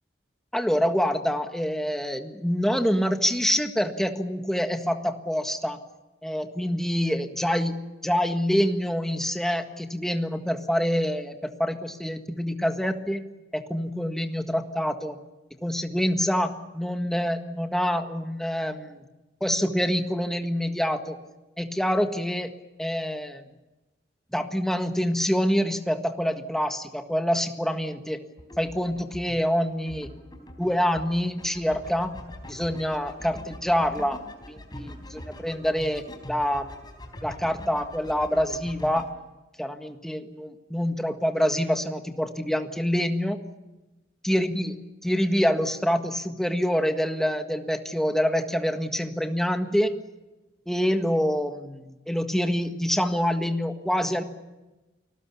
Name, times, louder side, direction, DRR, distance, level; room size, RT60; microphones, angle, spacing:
voice 1, 0.5-5.8 6.2-7.8 8.0-13.2 13.5-15.2 15.6-19.0 19.4-21.2 21.6-22.5 22.8-23.4 24.3-28.2 28.6-30.1 30.4-32.1 32.5-34.2 34.5-36.0 36.3-36.8 37.2-39.0 39.6-43.4 44.2-44.7 45.0-49.9 50.7-54.2, equal, ahead, 6 dB, 1.6 m, -26 dB
sound 1, 28.4-39.1, left 1 dB, 25° left, 3.9 m, -43 dB
30.0 x 19.5 x 7.1 m, 1.1 s
head